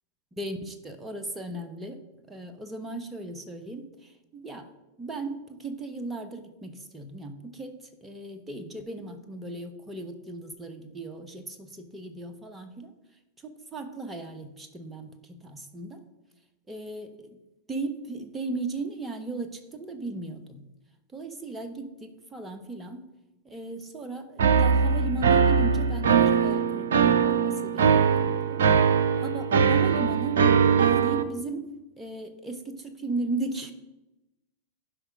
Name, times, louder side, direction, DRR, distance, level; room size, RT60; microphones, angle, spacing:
voice 1, 0.4-4.7 5.0-12.9 13.4-16.0 16.7-17.4 17.7-20.6 21.1-23.1 23.4-28.6 29.2-30.4 30.8-31.7 32.0-33.7, right 2 dB, 10° right, 7 dB, 1.1 m, -36 dB
sound 1, 24.4-31.2, right 6 dB, 65° right, 0.6 m, -21 dB
11.5 x 5.1 x 5.0 m, 0.97 s
figure-of-eight pair, 90°, 0 cm